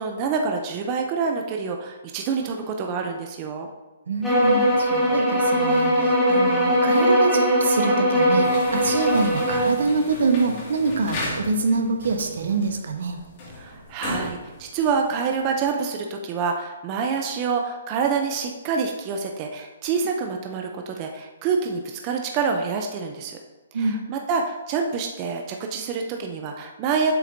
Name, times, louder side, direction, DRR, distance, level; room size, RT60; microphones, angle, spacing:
voice 1, 0.0-3.7 6.3-6.6 13.6-23.4 23.7-27.1, right 5 dB, 25° right, 3 dB, 0.5 m, -27 dB
voice 2, 4.1-13.2 23.7-24.0, right 3 dB, 75° right, 5 dB, 1.0 m, -25 dB
sound 1, 4.2-9.7, equal, 5° left, 1.8 m, -20 dB
sound 2, 8.4-15.6, left 2 dB, 35° left, 2.1 m, -36 dB
7.6 x 6.3 x 2.7 m, 1.2 s
hypercardioid pair, 160°, 0 cm